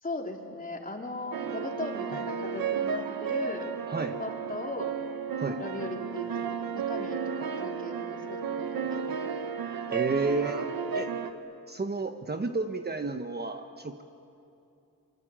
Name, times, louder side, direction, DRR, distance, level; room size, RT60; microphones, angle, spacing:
voice 1, 0.0-3.7 4.2-4.9 5.6-9.4, left 2 dB, 25° left, 1 dB, 3.9 m, -38 dB
sound 1, 1.3-11.3, right 6 dB, 80° right, 1.5 m, -33 dB
voice 2, 9.9-10.6 10.9-11.1 11.7-14.0, right 3 dB, 30° right, 6 dB, 1.2 m, -31 dB
27.0 x 24.0 x 8.9 m, 2.7 s
cardioid pair, 100°, 35 cm